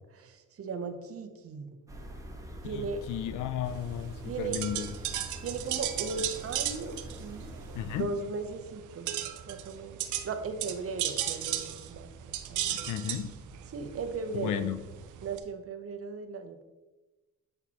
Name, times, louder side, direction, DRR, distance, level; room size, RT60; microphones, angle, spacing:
voice 1, 0.2-1.7 2.6-3.0 4.3-4.6 5.4-7.5 8.0-9.1 9.5-10.0 10.2-12.1 12.5-12.8 13.7-14.7 15.2-16.6, right 4 dB, 50° right, 8 dB, 0.8 m, -37 dB
sound 1, 1.9-8.0, equal, 10° right, 1.2 m, -45 dB
voice 2, 2.7-4.9 7.7-8.1 12.7-13.3 14.3-14.8, left 10 dB, 80° left, 13 dB, 0.6 m, -34 dB
sound 2, 3.7-15.4, right 11 dB, 80° right, 0.6 m, -37 dB
8.3 x 5.6 x 2.9 m, 1.1 s
cardioid pair, 90°, 30 cm